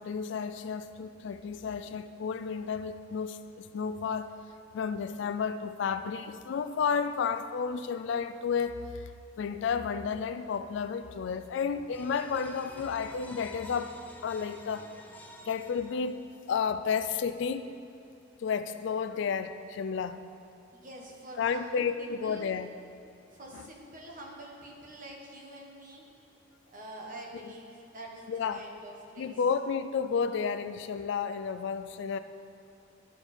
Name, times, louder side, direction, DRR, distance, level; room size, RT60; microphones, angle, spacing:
voice 1, 0.0-4.5 4.7-9.1 9.4-13.9 14.2-14.9 15.5-17.7 18.4-20.2 21.4-22.7 23.5-23.7 27.4-27.5 28.3-28.6 29.2-32.2, left 6 dB, 65° left, 11 dB, 0.3 m, -32 dB
sound 1, 11.9-16.5, equal, 10° left, 0.5 m, -50 dB
voice 2, 20.7-22.5 23.3-26.0 26.7-29.3, right 1 dB, 45° right, -1 dB, 1.3 m, -46 dB
12.5 x 4.5 x 4.3 m, 2.6 s
head